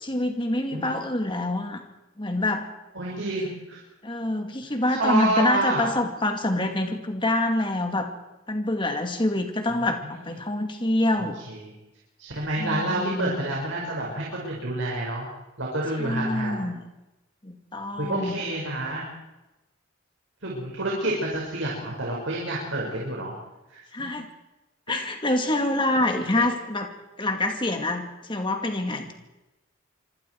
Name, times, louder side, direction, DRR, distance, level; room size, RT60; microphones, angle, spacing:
voice 1, 0.0-1.8 2.2-2.7 4.0-8.1 8.5-11.4 12.6-13.5 16.0-16.8 17.4-18.3 23.9-24.3 24.9-26.9 27.2-29.1, left 1 dB, 25° left, 4 dB, 2.4 m, -26 dB
voice 2, 2.9-3.8 5.0-5.9 10.1-10.3 11.2-11.7 12.2-15.3 15.6-16.6 18.0-19.0 20.4-23.3 23.7-24.1 24.9-25.0 26.3-26.5, right 1 dB, 65° right, -3 dB, 5.7 m, -29 dB
26.0 x 26.0 x 4.8 m, 1.0 s
head